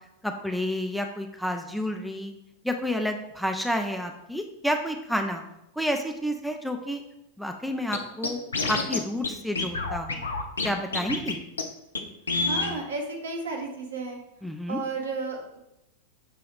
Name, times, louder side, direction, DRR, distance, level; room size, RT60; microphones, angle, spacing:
voice 1, 0.2-2.3 2.6-5.4 5.8-7.0 7.4-8.4 8.7-10.2 10.6-11.4 14.4-14.8, equal, ahead, 4 dB, 0.3 m, -30 dB
Scratching (performance technique), 7.9-8.0 8.2-9.0 9.2-9.3 9.6-10.7 10.9-11.3 11.6-11.7 11.9-12.0 12.3-12.7, left 3 dB, 75° left, 0.4 m, -27 dB
voice 2, 12.4-14.2 14.7-15.7, right 3 dB, 70° right, 1 dB, 0.8 m, -33 dB
5.9 x 2.3 x 3.4 m, 0.86 s
figure-of-eight pair, 90°, 0 cm